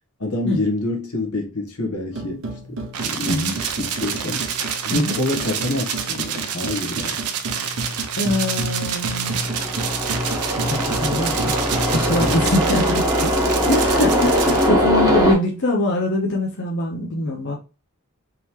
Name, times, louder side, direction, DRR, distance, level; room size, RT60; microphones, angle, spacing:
voice 1, 0.2-4.5 4.8-7.2 12.2-12.6 14.6-14.8, left 2 dB, 80° left, 1.2 m, -27 dB
sound 1, 2.1-12.4, right 1 dB, 60° right, 0.9 m, -31 dB
sound 2, 2.9-14.7, right 8 dB, 85° right, 0.6 m, -28 dB
voice 2, 3.2-3.5 4.9-5.1 8.2-9.6 10.5-11.4 11.9-13.3 13.7-17.5, left 2 dB, 55° left, 0.7 m, -23 dB
sound 3, 9.2-15.3, equal, 15° right, 1.0 m, -21 dB
3.8 x 2.9 x 3.1 m
head